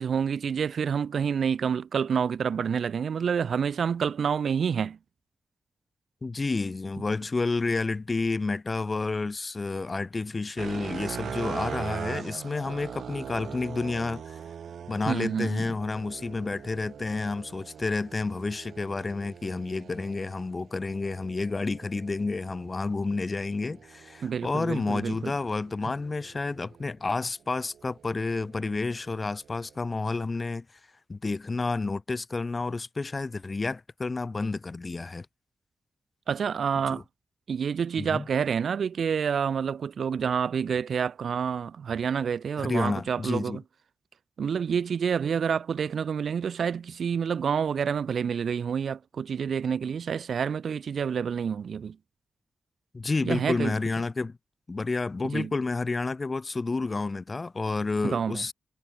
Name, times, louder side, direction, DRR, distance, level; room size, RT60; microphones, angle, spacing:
voice 1, 0.0-5.0 15.1-15.6 24.2-25.3 36.3-37.0 37.5-43.6 44.4-52.0 53.2-53.7 55.3-55.5 58.0-58.4, right 7 dB, 75° right, 1.9 m, -28 dB
voice 2, 6.2-14.3 14.9-30.6 31.1-35.3 36.9-37.0 38.0-38.3 42.6-43.6 52.9-54.4 54.7-58.5, left 3 dB, 30° left, 1.5 m, -30 dB
sound 1, 10.6-26.9 27.5-30.0, right 8 dB, 90° right, 7.0 m, -42 dB
wide cardioid pair, 115°, 0 cm